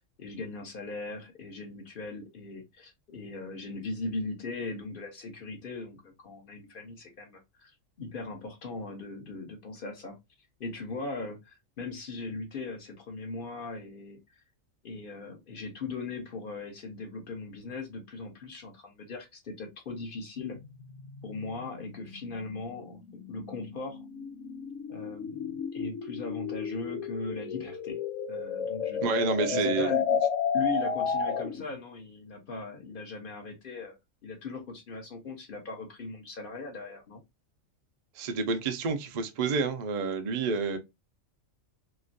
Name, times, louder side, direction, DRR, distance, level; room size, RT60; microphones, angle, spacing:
voice 1, 0.2-7.7 8.0-10.2 10.6-14.4 14.8-20.6 21.2-23.0 23.3-24.0 24.9-28.0 28.3-30.2 30.5-34.0 34.2-37.2, left 3 dB, 50° left, 0.8 m, -39 dB
sound 1, 20.4-31.7, left 6 dB, 90° left, 1.2 m, -32 dB
voice 2, 29.0-29.9 38.2-40.8, right 4 dB, 55° right, 0.4 m, -29 dB
3.0 x 2.5 x 2.5 m
omnidirectional pair, 1.4 m